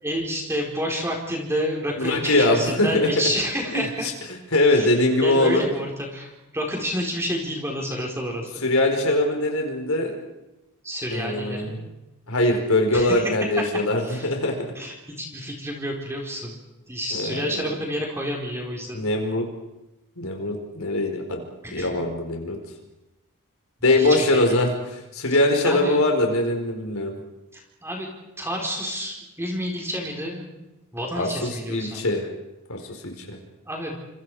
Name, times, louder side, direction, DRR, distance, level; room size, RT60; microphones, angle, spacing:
voice 1, 0.0-4.1 4.7-8.6 10.8-11.8 12.9-13.2 14.0-14.3 14.8-16.5 16.9-19.1 21.6-22.0 24.0-24.7 25.6-26.0 27.5-28.1 28.4-30.5 30.9-32.0 33.7-34.0, equal, 10° right, 0 dB, 4.5 m, -29 dB
voice 2, 2.0-3.1 3.7-4.1 4.5-5.6 8.6-10.1 11.1-11.8 12.3-14.6 17.1-17.7 18.9-19.4 20.2-21.4 21.7-22.6 23.8-27.1 31.1-32.3 32.7-33.4, left 2 dB, 70° left, 3 dB, 4.7 m, -22 dB
29.5 x 26.5 x 5.0 m, 0.98 s
head